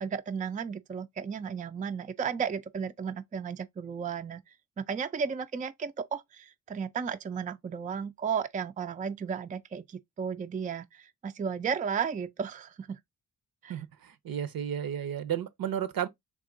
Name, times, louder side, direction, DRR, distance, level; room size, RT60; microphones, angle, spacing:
voice 1, 0.0-4.4 4.8-13.0 13.6-13.8, right 6 dB, 25° right, 0.3 m, -34 dB
voice 2, 13.7-16.1, right 9 dB, 65° right, 0.7 m, -33 dB
3.6 x 2.8 x 3.7 m
cardioid pair, 75°, 37 cm